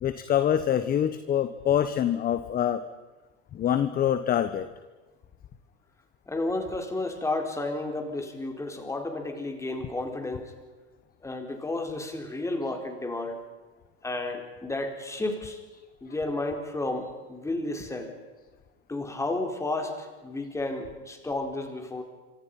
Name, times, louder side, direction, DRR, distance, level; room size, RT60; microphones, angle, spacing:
voice 1, 0.0-2.8 3.5-4.7, left 10 dB, 30° left, 11 dB, 1.2 m, -25 dB
voice 2, 6.3-10.5 11.2-13.4 14.0-15.6 16.0-18.2 18.9-22.0, left 2 dB, 10° left, 4 dB, 4.3 m, -32 dB
27.5 x 25.0 x 5.5 m, 1.3 s
supercardioid pair, 130°, 31 cm